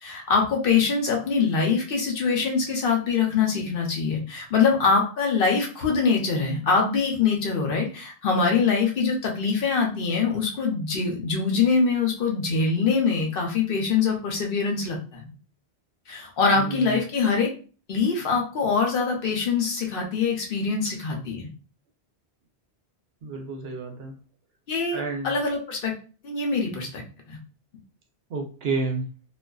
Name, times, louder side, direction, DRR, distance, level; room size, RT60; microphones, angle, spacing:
voice 1, 0.0-15.3 16.1-17.5 17.9-21.5 24.7-25.9 26.2-27.0 27.3-27.4, left 5 dB, 60° left, 1 dB, 0.8 m, -24 dB
voice 2, 16.6-17.0 23.2-24.2 24.9-25.4 28.3-29.1, right 3 dB, 70° right, 2 dB, 0.8 m, -30 dB
2.4 x 2.4 x 2.2 m, 0.36 s
omnidirectional pair, 1.1 m